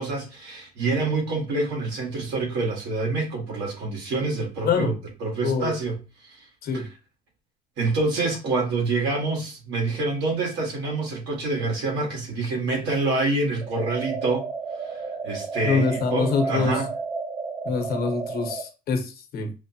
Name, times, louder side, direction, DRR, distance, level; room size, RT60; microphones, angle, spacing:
voice 1, 0.0-4.9 5.2-6.0 7.8-14.5 14.9-16.9, right 3 dB, 85° right, 1.8 m, -26 dB
voice 2, 4.6-5.0 5.4-5.8 6.6-6.9 15.6-16.8 17.6-19.5, left 5 dB, 65° left, 1.0 m, -25 dB
sound 1, 13.6-18.6, right 4 dB, 20° right, 0.6 m, -32 dB
4.8 x 2.1 x 2.8 m
cardioid pair, 110°, 17 cm